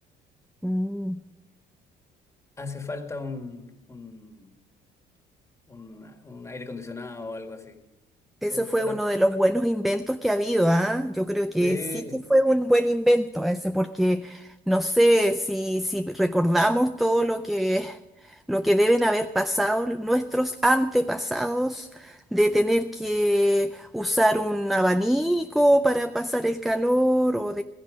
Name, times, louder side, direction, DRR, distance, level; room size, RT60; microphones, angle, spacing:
voice 1, 0.6-1.2 8.4-11.8 12.1-27.6, equal, ahead, 9 dB, 0.5 m, -23 dB
voice 2, 2.6-4.5 5.7-7.8 8.5-9.0 11.6-12.2, left 3 dB, 15° left, 5 dB, 1.9 m, -37 dB
16.5 x 14.5 x 5.1 m, 0.97 s
cardioid pair, 110°, 17 cm